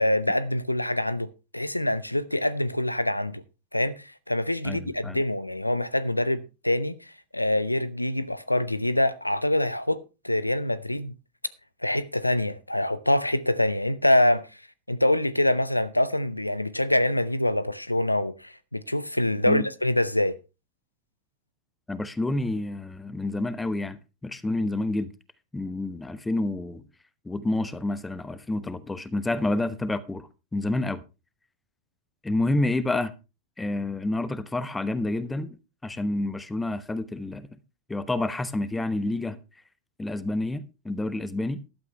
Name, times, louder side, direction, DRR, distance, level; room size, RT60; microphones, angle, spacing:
voice 1, 0.0-3.4 3.7-10.0 10.2-11.1 11.8-14.4 14.9-20.3, left 1 dB, 85° left, 0.7 m, -25 dB
voice 2, 4.6-5.2 19.5-19.7 21.9-25.1 25.5-26.8 27.2-31.0 32.2-33.1 33.6-35.6 35.8-37.5 37.9-39.4 40.0-41.6, left 2 dB, 10° left, 1.0 m, -29 dB
14.0 x 12.0 x 3.2 m
figure-of-eight pair, 90°, 0 cm